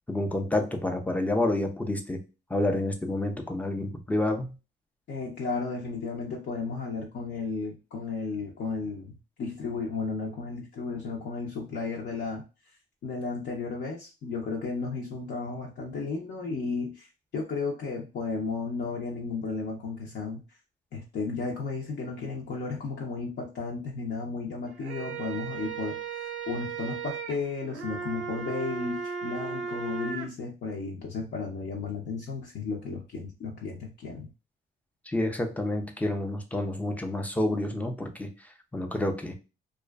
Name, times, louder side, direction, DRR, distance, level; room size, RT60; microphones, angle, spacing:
voice 1, 0.1-2.2 2.5-4.5 35.1-38.3 38.7-39.4, left 1 dB, 5° left, 5 dB, 0.5 m, -29 dB
voice 2, 5.1-12.4 13.0-17.1 17.3-20.4 20.9-34.3, left 4 dB, 60° left, -2 dB, 0.6 m, -34 dB
sound 1, 24.7-30.3, right 5 dB, 90° right, 0.5 m, -36 dB
2.4 x 2.3 x 2.2 m, 0.30 s
cardioid pair, 90°, 20 cm